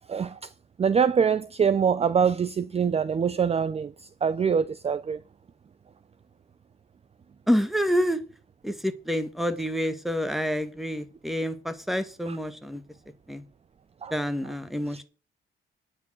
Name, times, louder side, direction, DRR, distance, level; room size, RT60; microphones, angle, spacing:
voice 1, 0.1-0.4 0.8-3.9 4.2-5.2 12.3-12.4 14.0-14.1, right 6 dB, 30° right, 0.6 m, -24 dB
voice 2, 7.5-8.2 8.6-12.8 13.3-13.4 14.1-15.0, equal, ahead, 1.7 m, -28 dB
9.6 x 6.3 x 7.5 m
cardioid pair, 90°, 20 cm